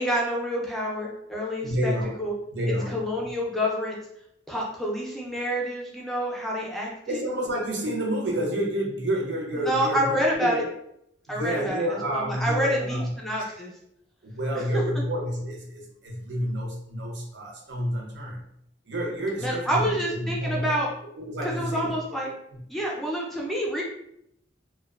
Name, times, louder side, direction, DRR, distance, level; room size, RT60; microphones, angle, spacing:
voice 1, 0.0-2.3 2.9-4.0 4.5-7.2 9.6-10.6 11.3-13.7 19.4-20.9 21.4-22.3 22.7-23.8, equal, ahead, -3 dB, 0.4 m, -28 dB
voice 2, 1.6-2.2 2.5-3.0 7.1-10.6 11.3-13.1 13.4-13.6 14.2-18.5 18.8-20.8 21.2-22.0 22.5-22.6, equal, 75° right, 0 dB, 0.6 m, -29 dB
2.4 x 2.1 x 2.3 m, 0.76 s
head